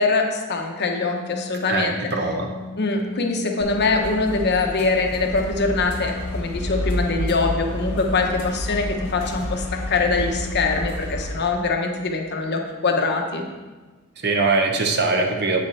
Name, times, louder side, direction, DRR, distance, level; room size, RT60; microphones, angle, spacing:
voice 1, 0.0-2.4 2.8-8.9 9.1-13.4, left 3 dB, 50° left, 2 dB, 1.0 m, -23 dB
Organ, 0.6-11.2, left 3 dB, 70° right, 2.4 m, -37 dB
voice 2, 1.7-2.5 14.2-15.6, right 3 dB, 50° right, 3 dB, 0.9 m, -21 dB
sound 1, 3.6-11.3, left 1 dB, 75° left, 1.3 m, -30 dB
8.6 x 6.6 x 4.2 m, 1.3 s
head